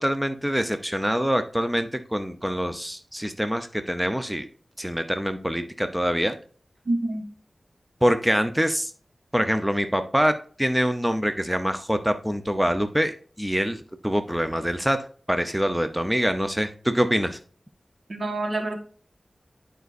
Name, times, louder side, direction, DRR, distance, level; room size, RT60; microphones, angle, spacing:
voice 1, 0.0-4.5 4.8-6.4 8.0-8.9 9.3-15.0 15.3-17.4, equal, 5° right, 8 dB, 0.7 m, -25 dB
voice 2, 6.8-7.2 18.1-18.8, right 2 dB, 65° right, 5 dB, 1.4 m, -27 dB
11.0 x 5.1 x 2.5 m, 0.43 s
wide cardioid pair, 65°, 0 cm